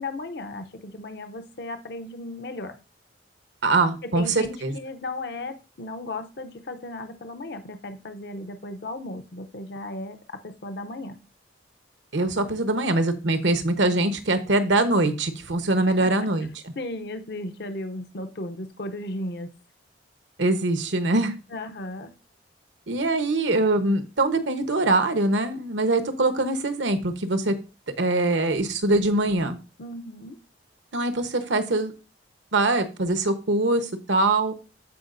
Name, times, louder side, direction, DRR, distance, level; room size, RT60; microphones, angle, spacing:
voice 1, 0.0-2.8 4.0-11.2 15.9-16.3 16.8-19.5 21.5-22.1 29.8-30.4, left 2 dB, 60° left, 8 dB, 0.7 m, -35 dB
voice 2, 3.6-4.7 12.1-16.5 20.4-21.3 22.9-27.5 28.0-29.6 30.9-31.9 32.5-34.5, right 2 dB, 80° right, 9 dB, 1.0 m, -23 dB
14.0 x 4.9 x 2.6 m, 0.32 s
head